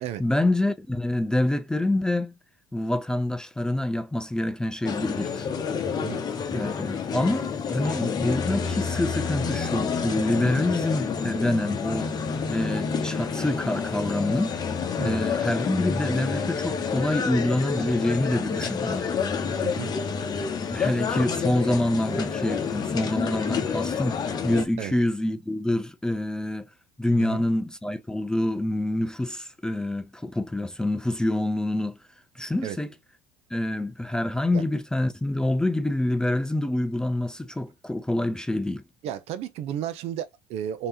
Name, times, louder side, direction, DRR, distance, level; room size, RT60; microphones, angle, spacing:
voice 1, 0.2-2.3 2.7-5.5 6.5-12.1 12.5-14.7 15.0-19.1 20.7-26.7 27.0-32.0 32.4-32.9 33.5-38.8, left 1 dB, 5° left, 0.4 m, -26 dB
sound 1, 4.8-24.6, left 6 dB, 35° left, 0.9 m, -29 dB
voice 2, 39.0-40.9, right 10 dB, 60° right, 0.6 m, -33 dB
3.2 x 2.9 x 2.8 m
supercardioid pair, 90°, 12 cm